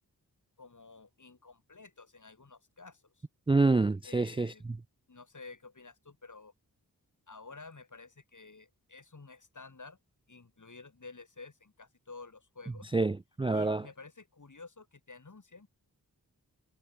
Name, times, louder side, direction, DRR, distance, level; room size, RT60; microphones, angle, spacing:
voice 1, 0.6-3.3 4.0-4.6 5.1-6.5 7.3-10.0 10.3-12.9 13.5-15.7, left 3 dB, 50° left, 3.7 m, -51 dB
voice 2, 3.5-4.5 12.9-13.9, right 3 dB, 15° right, 0.3 m, -27 dB
wide cardioid pair, 70°, 38 cm